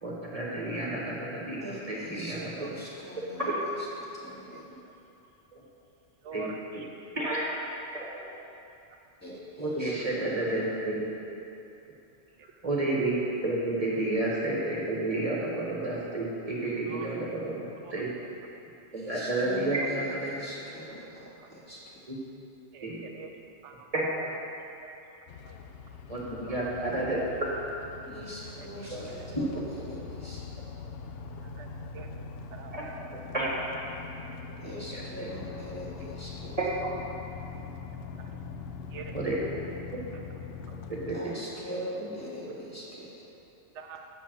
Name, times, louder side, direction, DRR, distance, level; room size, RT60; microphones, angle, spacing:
voice 1, 0.0-2.8 3.4-3.6 4.7-4.8 5.5-5.6 6.3-6.5 7.1-7.4 7.9-8.2 9.6-11.1 12.6-18.1 18.9-20.3 22.1-22.2 22.8-23.0 23.9-24.4 26.1-27.2 28.9-29.2 32.7-32.8 33.1-33.5 34.9-35.3 36.6-36.9 39.1-39.4 39.9-40.0 40.9-41.3 41.7-42.1, right 2 dB, 35° right, -5 dB, 1.3 m, -31 dB
voice 2, 1.6-3.4 4.1-4.7 9.2-10.4 18.9-22.0 28.1-30.4 34.6-36.5 38.4-38.5 41.1-43.1, equal, 15° left, -8 dB, 2.0 m, -42 dB
voice 3, 2.4-2.7 4.5-4.6 6.2-7.2 12.4-12.5 16.9-17.1 17.8-17.9 21.4-21.5 22.7-23.3 23.6-23.9 24.7-25.0 25.4-25.5 26.4-26.7 28.6-29.1 31.4-31.7 31.9-32.1 32.5-32.7 35.6-35.7 38.2-38.3 38.9-39.2 43.7-44.1, right 6 dB, 75° right, 3 dB, 0.9 m, -45 dB
sound 1, 25.3-41.2, left 5 dB, 65° left, 0.7 m, -42 dB
7.1 x 6.1 x 7.5 m, 2.9 s
omnidirectional pair, 1.2 m